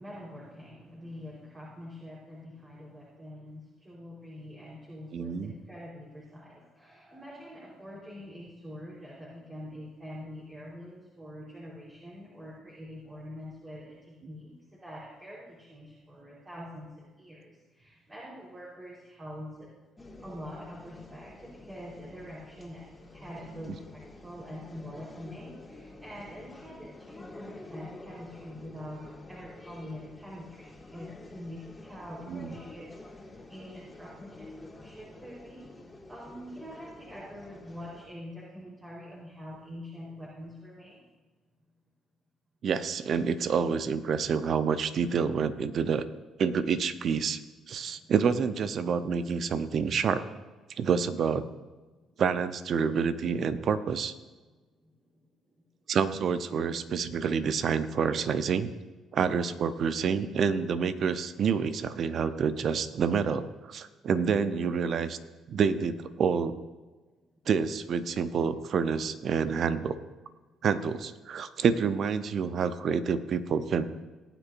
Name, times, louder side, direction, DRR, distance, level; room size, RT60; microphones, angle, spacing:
voice 1, 0.0-19.7 20.2-35.7 36.1-41.0 47.8-48.1 52.0-52.2 54.8-54.9, equal, 30° right, -6 dB, 4.1 m, -45 dB
voice 2, 5.1-5.5 32.3-32.5 42.6-46.0 46.4-47.4 47.7-50.2 50.8-51.4 52.2-54.1 55.9-58.7 59.1-65.2 65.5-66.6 67.5-70.0 70.6-73.8, right 6 dB, 55° right, 11 dB, 0.8 m, -28 dB
sound 1, 20.0-38.1, left 2 dB, 20° left, 2.1 m, -49 dB
19.0 x 9.1 x 2.6 m, 1.2 s
hypercardioid pair, 50°, 0 cm